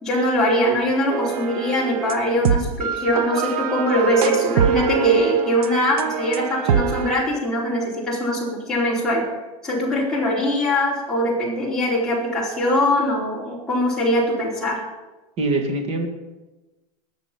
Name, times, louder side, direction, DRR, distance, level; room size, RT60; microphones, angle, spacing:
voice 1, 0.0-9.2 9.6-14.8, left 1 dB, 5° left, -8 dB, 4.4 m, -22 dB
sound 1, 1.1-7.2, right 7 dB, 80° right, 1.0 m, -23 dB
voice 2, 15.4-16.1, right 2 dB, 35° right, 3 dB, 2.3 m, -23 dB
20.5 x 7.0 x 5.4 m, 1.1 s
supercardioid pair, 160°, 19 cm